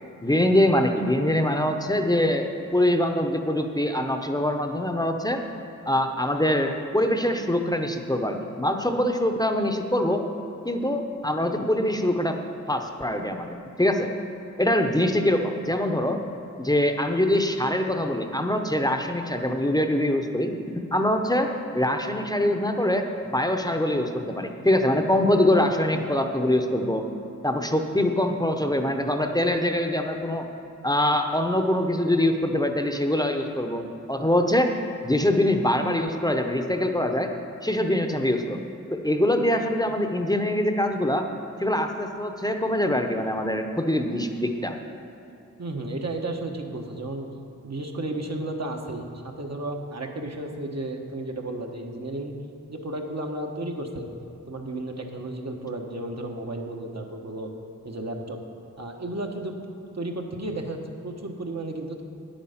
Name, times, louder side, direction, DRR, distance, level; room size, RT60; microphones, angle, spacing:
voice 1, 0.2-5.4 5.9-10.2 10.6-12.4 12.7-14.1 14.6-16.2 16.6-27.0 27.4-30.5 30.8-34.7 35.0-37.3 37.6-41.3 41.6-44.7, left 1 dB, 10° left, 5 dB, 0.8 m, -24 dB
voice 2, 45.6-47.3 47.6-52.3 52.7-54.1 54.5-57.5 57.8-58.4 58.8-59.5 59.9-62.0, right 2 dB, 55° right, 2 dB, 1.2 m, -33 dB
9.6 x 8.7 x 5.7 m, 2.8 s
wide cardioid pair, 50°, 31 cm